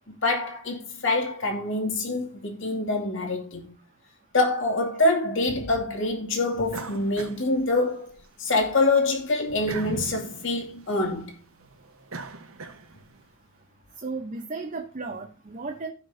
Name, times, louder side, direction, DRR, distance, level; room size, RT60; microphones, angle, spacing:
voice 1, 0.1-3.7 4.3-8.1 8.4-11.3, left 2 dB, 60° left, 2.6 m, -25 dB
sound 1, 6.7-8.2 8.6-13.2, right 3 dB, 80° right, 1.3 m, -40 dB
voice 2, 14.0-15.9, right 3 dB, 35° right, 0.8 m, -34 dB
16.0 x 5.7 x 2.7 m
head